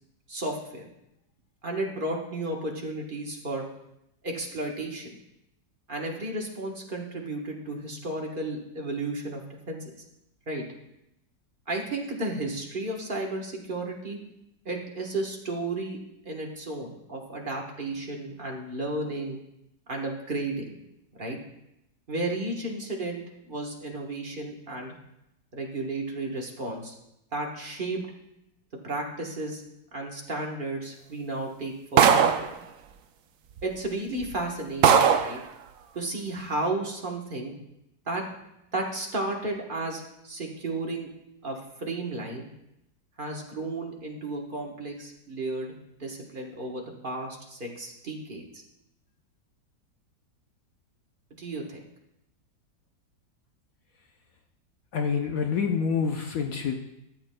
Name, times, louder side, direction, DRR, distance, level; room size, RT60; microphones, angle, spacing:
voice 1, 0.3-0.9 1.6-3.6 4.2-5.1 5.9-10.0 10.5-10.6 11.7-14.2 14.6-16.0 16.2-19.4 19.9-20.8 21.1-21.4 22.1-24.9 25.5-26.9 27.3-28.0 28.8-29.6 29.9-32.5 33.6-35.4 35.9-37.5 38.1-38.2 38.7-41.1 41.4-42.5 43.2-45.7 46.0-48.4 51.4-51.8, right 2 dB, 35° right, 0 dB, 1.1 m, -33 dB
sound 1, 32.0-32.5 33.6-33.7 34.2-34.3 34.8-35.4, right 7 dB, 70° right, 0.8 m, -19 dB
voice 2, 54.9-56.8, left 6 dB, 65° left, 4 dB, 0.9 m, -27 dB
13.0 x 8.2 x 2.2 m, 0.84 s
omnidirectional pair, 1.9 m